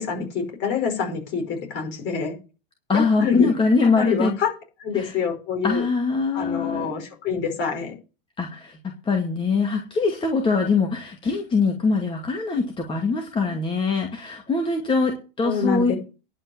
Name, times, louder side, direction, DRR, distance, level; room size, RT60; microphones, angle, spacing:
voice 1, 0.0-2.3 2.9-3.5 4.0-4.5 4.8-5.8 6.3-7.9 15.4-16.0, left 6 dB, 40° left, 4 dB, 5.3 m, -26 dB
voice 2, 2.9-4.3 4.9-5.1 5.6-7.0 8.4-15.9, left 4 dB, 15° left, 3 dB, 2.3 m, -23 dB
11.0 x 5.8 x 8.7 m, 0.33 s
hypercardioid pair, 120°, 29 cm